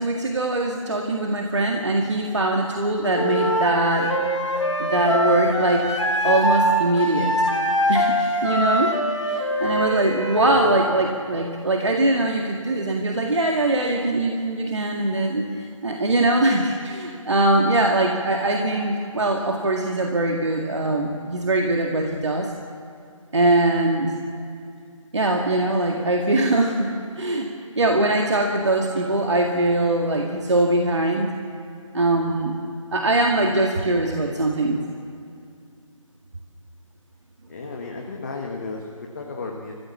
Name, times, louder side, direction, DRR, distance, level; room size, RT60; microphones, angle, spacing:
voice 1, 0.0-4.1 4.8-5.9 6.2-7.3 7.9-9.0 9.2-15.4 15.8-22.5 23.3-24.2 25.1-27.5 27.8-31.3 31.9-32.6 32.9-34.8, right 2 dB, 55° right, 1 dB, 2.0 m, -22 dB
Wind instrument woodwind instrument, 3.1-6.7 7.0-10.8, left 1 dB, 60° left, 4.7 m, -23 dB
voice 2, 10.3-10.8 37.5-39.7, left 3 dB, 30° left, 0 dB, 1.6 m, -34 dB
27.5 x 15.5 x 7.4 m, 2.4 s
figure-of-eight pair, 155°, 17 cm